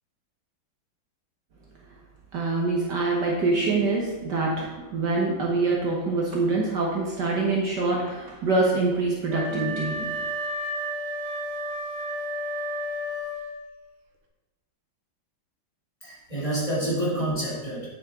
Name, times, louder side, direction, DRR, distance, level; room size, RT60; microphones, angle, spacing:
voice 1, 2.3-10.3, right 3 dB, 60° right, -2 dB, 1.6 m, -25 dB
Wind instrument woodwind instrument, 9.3-13.7, equal, 90° right, 2.0 m, -32 dB
voice 2, 16.0-17.9, right 1 dB, 15° left, -7 dB, 2.7 m, -28 dB
9.4 x 7.3 x 3.6 m, 1.1 s
omnidirectional pair, 2.3 m